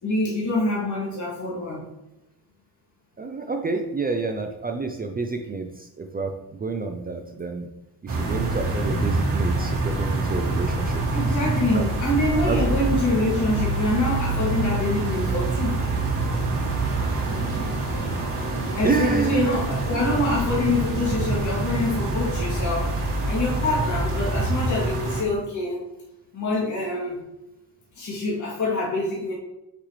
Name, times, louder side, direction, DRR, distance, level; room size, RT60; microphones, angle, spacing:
voice 1, 0.0-1.8 11.1-15.7 18.8-25.8 26.3-27.2 28.0-29.3, left 2 dB, 45° left, -6 dB, 2.4 m, -25 dB
voice 2, 3.2-5.7 6.0-6.3 6.6-7.7 8.0-11.0 11.7-11.8 12.5-12.6 17.1-17.2 18.8-19.6, right 4 dB, 20° right, 4 dB, 0.5 m, -28 dB
sound 1, 8.1-25.2, right 2 dB, 50° right, 1.8 m, -25 dB
6.3 x 6.0 x 3.2 m, 0.91 s
cardioid pair, 140°, 42 cm